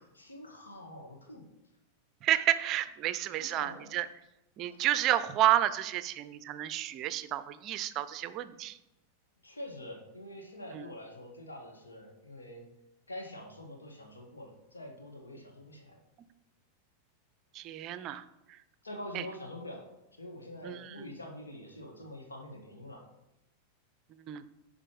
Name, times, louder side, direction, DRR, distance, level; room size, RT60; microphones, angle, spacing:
voice 1, 0.2-1.4 3.4-3.9 4.8-4.9 9.4-12.6 13.1-16.0 18.8-19.8 20.2-23.0, left 1 dB, 75° left, 1 dB, 1.9 m, -45 dB
voice 2, 2.2-4.1 4.6-8.8 10.7-10.8 17.5-18.2 19.1-19.2 20.6-20.9 24.3-24.4, right 12 dB, 35° right, 14 dB, 0.5 m, -30 dB
9.8 x 5.0 x 5.3 m, 0.91 s
figure-of-eight pair, 90°, 0 cm